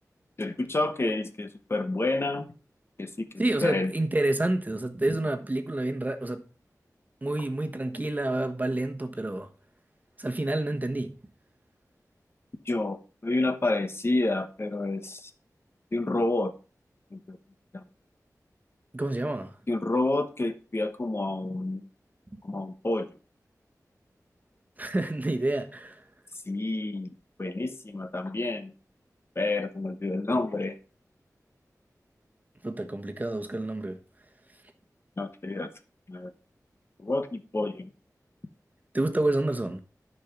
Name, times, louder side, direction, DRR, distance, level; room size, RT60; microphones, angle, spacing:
voice 1, 0.4-2.4 3.0-3.3 3.6-3.9 12.7-15.3 15.9-16.5 17.1-17.4 17.7-17.8 19.7-21.8 22.4-23.1 26.5-27.1 27.4-28.7 29.4-30.8 35.2-35.7 36.1-36.3 37.0-37.9, left 2 dB, 40° left, 1.1 m, -29 dB
voice 2, 3.4-6.4 7.2-9.5 10.2-11.1 18.9-19.5 22.3-22.4 24.8-26.0 32.6-34.0 38.9-39.8, right 2 dB, 25° right, 1.3 m, -28 dB
10.0 x 5.5 x 5.9 m
wide cardioid pair, 85°, 6 cm